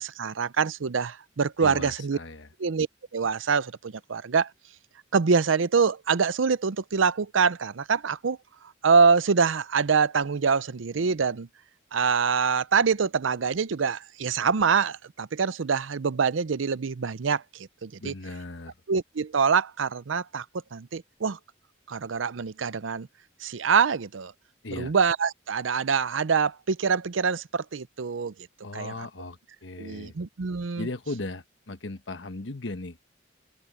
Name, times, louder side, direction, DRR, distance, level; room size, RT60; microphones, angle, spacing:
voice 1, 0.0-2.2 2.6-2.9 3.1-4.5 5.1-8.4 8.8-11.5 11.9-18.1 18.9-20.5 20.7-21.4 21.9-23.1 23.4-24.3 24.8-28.3 28.7-28.9 29.8-30.9, right 5 dB, 90° right, 0.6 m, -25 dB
voice 2, 1.6-2.5 18.0-18.7 24.6-24.9 28.6-30.1 30.7-33.0, left 2 dB, 70° left, 1.2 m, -37 dB
head